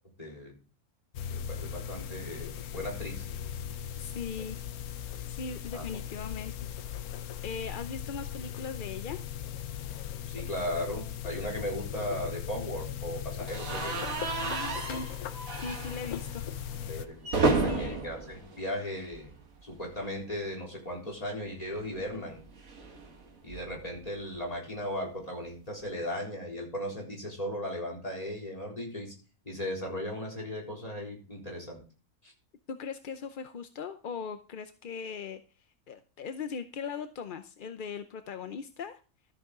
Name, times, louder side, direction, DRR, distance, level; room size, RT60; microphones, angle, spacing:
voice 1, 0.2-0.6 1.3-3.3 5.7-6.0 10.3-14.0 16.9-19.3 19.6-22.4 23.4-29.1 29.4-31.8 32.2-32.3, equal, 25° left, 0 dB, 4.0 m, -37 dB
sound 1, 1.1-17.1, left 10 dB, 85° left, 1.2 m, -38 dB
voice 2, 4.0-4.6 5.3-6.5 7.4-9.2 14.4-15.1 15.5-16.4 17.5-18.0 32.7-35.4 35.9-39.0, left 5 dB, 50° left, 9 dB, 0.6 m, -39 dB
sound 2, 13.5-19.5 19.8-20.0 20.3-20.4 21.6-24.0, right 3 dB, 70° right, 2.2 m, -33 dB
13.0 x 7.8 x 3.7 m, 0.34 s
omnidirectional pair, 1.5 m